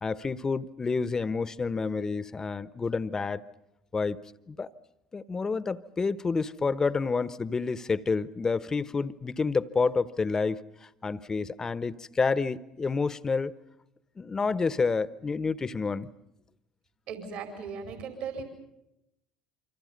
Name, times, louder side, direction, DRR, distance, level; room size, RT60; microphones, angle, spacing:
voice 1, 0.0-3.4 3.9-4.2 4.5-4.7 5.1-13.5 14.2-16.1, left 4 dB, 25° left, 1.1 m, -29 dB
voice 2, 17.1-18.4, right 5 dB, 65° right, 4.8 m, -37 dB
28.0 x 25.5 x 5.4 m
hypercardioid pair, 70°, 2 cm